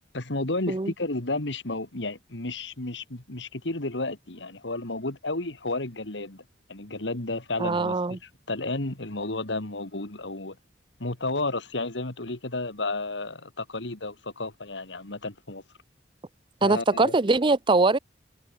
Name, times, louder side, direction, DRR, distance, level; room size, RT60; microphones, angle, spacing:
voice 1, 0.1-6.4 6.7-10.6 11.0-15.6 16.6-17.1, left 2 dB, 75° left, 2.5 m, -32 dB
voice 2, 7.6-8.2 16.6-18.0, right 3 dB, 25° right, 0.6 m, -22 dB
head